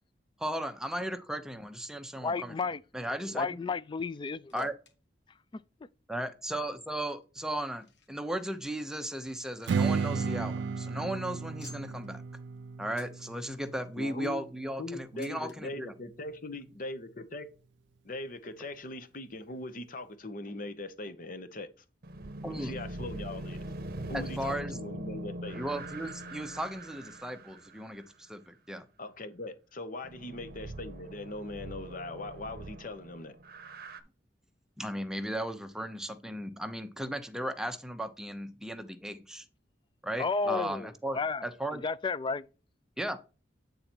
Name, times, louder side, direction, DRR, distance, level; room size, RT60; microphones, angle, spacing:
voice 1, 0.4-3.5 4.5-4.7 6.1-12.2 12.8-15.9 22.4-22.7 24.1-24.8 25.5-28.9 34.8-39.4 40.0-41.8 43.0-43.2, right 1 dB, 5° right, 0.7 m, -36 dB
voice 2, 2.2-2.8 3.3-4.7 40.2-41.4 41.7-42.4, left 4 dB, 25° left, 0.3 m, -32 dB
sound 1, 4.3-4.9 5.2-5.3 6.0-6.1 6.8-8.3 8.7-8.8 9.0-10.1 10.4-10.5 10.7-10.9 11.6-12.1 12.9-13.3 13.9-14.5 15.2-15.6 16.5-16.6 16.8-16.9 17.7-17.8, left 4 dB, 70° left, 1.7 m, -57 dB
Strum, 9.7-14.9, right 5 dB, 75° right, 0.3 m, -34 dB
voice 3, 14.0-14.4 14.8-17.5 18.0-21.8 22.5-23.6 24.1-25.6 29.0-33.4 40.4-40.7, left 2 dB, 50° left, 0.9 m, -40 dB
sound 2, 22.0-28.1 30.0-34.0, right 1 dB, 60° right, 0.8 m, -42 dB
8.6 x 3.9 x 4.4 m
head